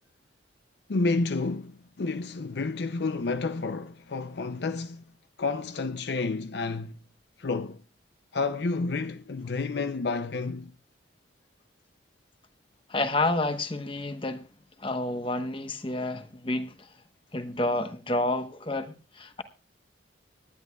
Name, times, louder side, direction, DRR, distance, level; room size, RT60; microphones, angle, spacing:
voice 1, 0.9-5.0 5.4-7.0 7.4-7.8 8.3-10.7, left 3 dB, 60° left, 0.5 m, -30 dB
voice 2, 12.9-14.5 14.8-16.7 17.3-19.4, left 2 dB, 30° left, 1.0 m, -29 dB
25.0 x 10.5 x 2.3 m
head